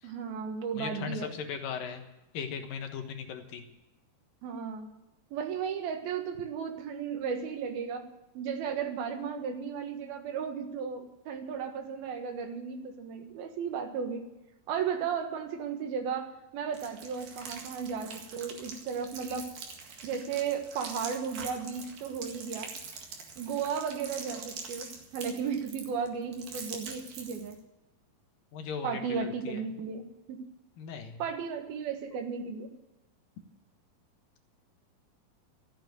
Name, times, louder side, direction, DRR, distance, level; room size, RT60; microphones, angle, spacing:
voice 1, 0.0-1.3 4.4-4.9 5.3-8.1 8.3-14.3 14.7-19.5 20.0-22.7 23.4-27.6 28.8-30.4 31.2-32.7, right 6 dB, 90° right, 5 dB, 3.4 m, -35 dB
voice 2, 0.8-2.1 2.3-3.6 28.5-29.7 30.8-31.2, left 6 dB, 75° left, 5 dB, 3.0 m, -38 dB
sound 1, 16.7-27.6, right 5 dB, 70° right, 3.6 m, -44 dB
14.0 x 9.0 x 9.2 m, 0.97 s
omnidirectional pair, 4.2 m